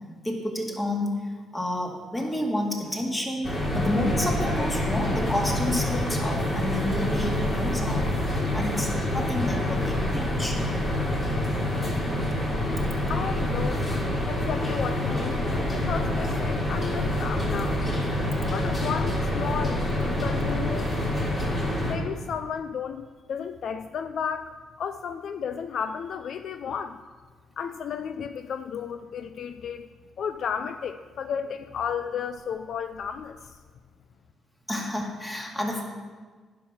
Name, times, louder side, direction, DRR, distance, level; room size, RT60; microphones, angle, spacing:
voice 1, 0.2-1.2 1.5-8.1 8.5-10.6 34.7-35.8, left 1 dB, 20° left, 0 dB, 2.2 m, -30 dB
sound 1, 3.4-21.9, left 1 dB, 35° left, 3.4 m, -27 dB
voice 2, 13.1-14.0 14.3-15.5 15.7-17.9 18.4-21.0 21.9-27.0 27.6-29.9 30.2-33.6, left 7 dB, 65° left, 10 dB, 0.4 m, -33 dB
10.0 x 5.9 x 6.0 m, 1.5 s
cardioid pair, 75°, 0 cm